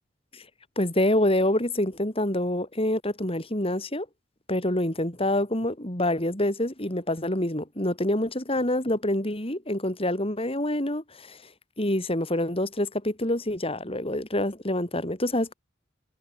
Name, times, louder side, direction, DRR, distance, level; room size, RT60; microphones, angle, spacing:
voice 1, 0.8-4.1 4.5-11.4 11.8-15.5, left 1 dB, 30° left, 5.5 m, -26 dB
head